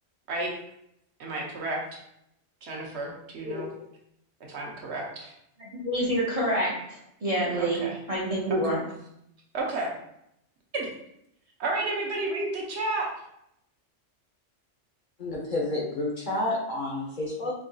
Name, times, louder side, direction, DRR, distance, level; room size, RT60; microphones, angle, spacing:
voice 1, 1.2-2.0 2.6-3.7 4.5-5.3 7.6-8.0 8.5-8.6 9.5-9.9 10.7-10.9 11.6-13.1, right 2 dB, 65° right, -2 dB, 1.0 m, -31 dB
voice 2, 3.4-3.8 15.2-17.5, left 2 dB, 45° left, -3 dB, 0.8 m, -30 dB
voice 3, 5.6-7.8 8.1-8.8, right 1 dB, 40° right, -6 dB, 0.6 m, -27 dB
4.5 x 2.6 x 2.3 m, 0.77 s
omnidirectional pair, 1.3 m